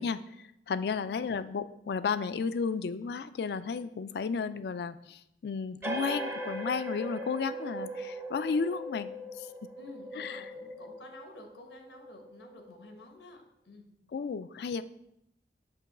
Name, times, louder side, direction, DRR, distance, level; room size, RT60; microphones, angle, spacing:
voice 1, 0.0-9.1 9.4-9.5 10.2-10.4 14.1-14.8, left 5 dB, 70° left, 14 dB, 0.3 m, -33 dB
sound 1, 5.8-13.0, right 1 dB, 15° right, 0.5 m, -39 dB
voice 2, 9.8-13.4 13.6-13.9, left 2 dB, 90° left, 3 dB, 1.2 m, -51 dB
7.0 x 3.0 x 6.0 m, 0.79 s
head